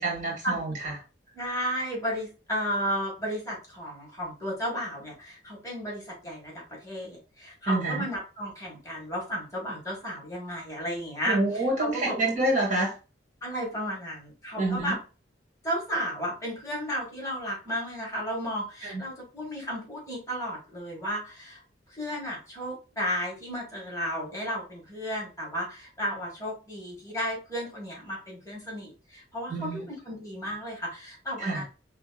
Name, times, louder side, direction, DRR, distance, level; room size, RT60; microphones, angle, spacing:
voice 1, 0.0-0.9 7.7-8.0 11.3-12.9 14.6-15.0 18.8-19.0 29.5-29.8 31.4-31.6, right 2 dB, 45° right, -2 dB, 1.9 m, -27 dB
voice 2, 1.3-12.1 13.4-15.0 15.6-21.6 22.0-31.6, equal, 20° left, -3 dB, 1.7 m, -33 dB
5.1 x 3.5 x 2.3 m, 0.32 s
head